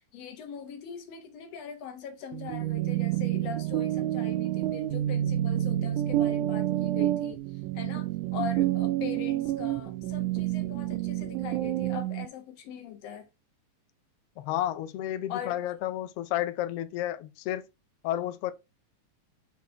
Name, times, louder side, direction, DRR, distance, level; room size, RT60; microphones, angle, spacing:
voice 1, 0.1-7.4 7.7-13.3 15.3-15.6, left 8 dB, 65° left, 2.1 m, -41 dB
sound 1, 2.3-12.3, right 14 dB, 85° right, 2.0 m, -29 dB
voice 2, 14.4-17.6 18.0-18.5, left 13 dB, 90° left, 1.3 m, -31 dB
5.6 x 4.2 x 4.3 m
omnidirectional pair, 3.5 m